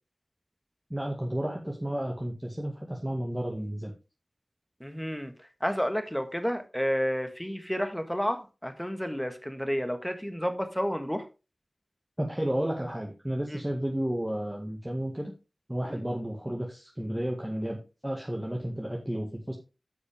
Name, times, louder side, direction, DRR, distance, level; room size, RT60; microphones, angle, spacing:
voice 1, 0.9-3.9 12.2-15.3 15.7-19.6, right 1 dB, 10° right, 1.9 m, -32 dB
voice 2, 4.8-5.3 5.6-11.2 13.5-13.6 15.9-16.0, equal, 5° left, 1.6 m, -31 dB
10.0 x 6.3 x 3.6 m
cardioid pair, 40°, 0 cm